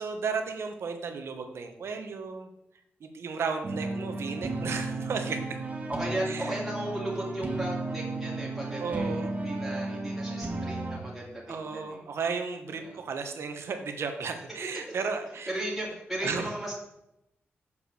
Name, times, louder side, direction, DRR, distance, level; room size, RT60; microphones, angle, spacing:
voice 1, 0.0-2.5 3.0-5.6 6.3-6.6 8.8-9.3 11.5-15.5 16.2-16.5, right 5 dB, 75° right, 6 dB, 1.2 m, -34 dB
sound 1, 3.6-11.0, right 2 dB, 35° right, 1.3 m, -34 dB
voice 2, 5.9-12.0 12.8-13.0 15.5-16.7, right 1 dB, 5° right, -6 dB, 2.5 m, -35 dB
6.8 x 5.2 x 6.8 m, 0.84 s
cardioid pair, 90°, 4 cm